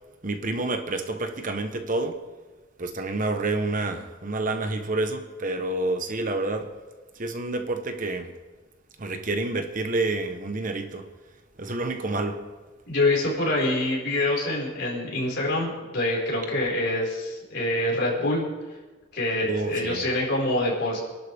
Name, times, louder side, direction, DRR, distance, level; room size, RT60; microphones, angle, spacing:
voice 1, 0.2-2.2 2.8-6.7 7.1-8.4 9.0-11.1 11.6-12.4 19.4-20.1, right 2 dB, 40° right, 6 dB, 1.1 m, -28 dB
voice 2, 12.9-18.4 19.1-21.0, left 2 dB, 55° left, -4 dB, 5.2 m, -25 dB
27.0 x 11.5 x 3.6 m, 1.3 s
head